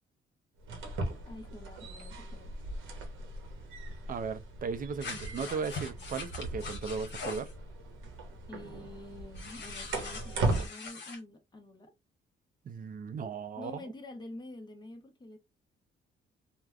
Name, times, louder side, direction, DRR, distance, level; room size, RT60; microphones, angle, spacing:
sound 1, 0.6-10.7, right 2 dB, 80° right, 0.9 m, -38 dB
voice 1, 1.2-2.5 8.5-11.9 13.6-15.4, left 2 dB, 20° left, 0.9 m, -47 dB
voice 2, 4.1-7.5 12.7-13.8, right 5 dB, 45° right, 0.5 m, -36 dB
sound 2, 5.0-7.5 9.3-11.2, left 4 dB, 60° left, 1.0 m, -42 dB
3.4 x 2.1 x 2.3 m
cardioid pair, 90°, 20 cm